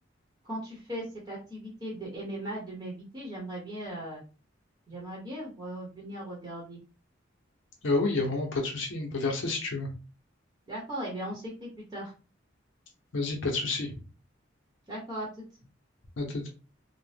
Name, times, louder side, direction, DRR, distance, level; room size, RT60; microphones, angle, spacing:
voice 1, 0.4-4.2 4.9-6.8 10.7-12.1 14.9-15.4, right 1 dB, 20° right, -4 dB, 0.9 m, -38 dB
voice 2, 7.8-9.9 13.1-14.0 16.2-16.5, left 3 dB, 70° left, 0 dB, 0.7 m, -29 dB
2.7 x 2.0 x 3.3 m, 0.34 s
head